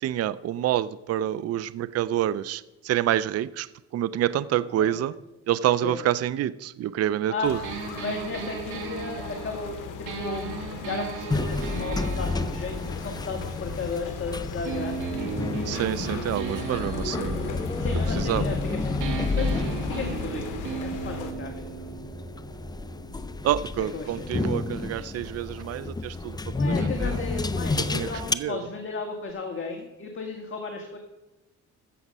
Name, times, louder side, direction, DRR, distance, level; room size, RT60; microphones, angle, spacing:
voice 1, 0.0-3.7 3.9-5.1 5.5-7.6 15.6-17.5 18.1-18.5 23.4-27.2 27.8-28.6, right 12 dB, 55° right, 16 dB, 0.5 m, -27 dB
sound 1, 7.4-21.3, left 7 dB, 90° left, 1.0 m, -38 dB
sound 2, 7.6-14.2 14.7-18.7 19.0-24.7, right 5 dB, 85° right, 2.2 m, -37 dB
voice 2, 8.0-15.0 15.3-15.8 17.8-21.9 23.8-24.6 26.5-31.0, left 4 dB, 40° left, 2 dB, 1.7 m, -35 dB
sound 3, 11.3-28.3, left 3 dB, 15° left, 0.5 m, -31 dB
14.5 x 7.1 x 5.4 m, 1.0 s
cardioid pair, 90°, 30 cm